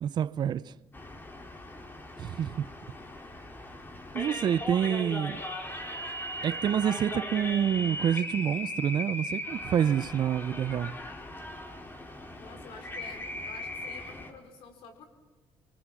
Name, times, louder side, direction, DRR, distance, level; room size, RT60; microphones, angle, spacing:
voice 1, 0.0-0.7 2.2-2.7 4.1-5.4 6.4-10.9, right 9 dB, 55° right, 0.6 m, -28 dB
sound 1, 0.9-14.3, left 1 dB, 20° left, 3.3 m, -38 dB
voice 2, 12.4-15.0, left 4 dB, 75° left, 5.0 m, -49 dB
25.0 x 24.0 x 6.1 m
cardioid pair, 105°, 9 cm